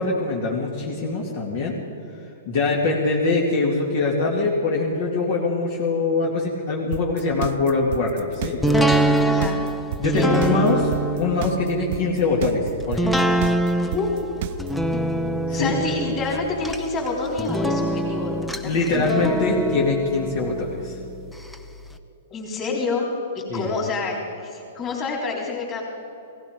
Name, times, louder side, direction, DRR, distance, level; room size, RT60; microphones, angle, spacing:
voice 1, 0.0-1.8 2.5-9.0 10.0-10.9 11.2-13.1 15.5-15.7 18.6-21.0 23.5-23.7, left 3 dB, 50° left, -2 dB, 2.4 m, -23 dB
sound 1, 6.9-14.9, right 11 dB, 50° right, 0.7 m, -30 dB
sound 2, 8.6-21.6 21.9-22.0, right 1 dB, 5° left, 0.7 m, -25 dB
voice 2, 9.3-9.6 10.1-10.7 13.7-14.2 15.5-19.0 22.3-23.1 23.3-25.8, left 3 dB, 20° left, -1 dB, 3.6 m, -28 dB
17.5 x 16.0 x 5.2 m, 2.9 s
hypercardioid pair, 150°, 0 cm